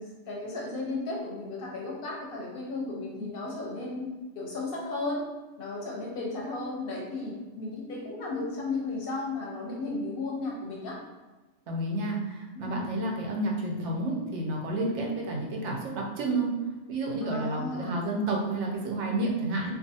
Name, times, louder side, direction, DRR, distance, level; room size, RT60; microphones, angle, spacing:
voice 1, 0.0-5.2 5.6-11.0 12.5-12.8 17.2-18.0, left 2 dB, 60° left, -3 dB, 0.7 m, -34 dB
voice 2, 11.7-16.5 16.9-19.7, right 2 dB, 80° right, -1 dB, 0.9 m, -30 dB
2.4 x 2.4 x 2.6 m, 1.2 s
omnidirectional pair, 1.2 m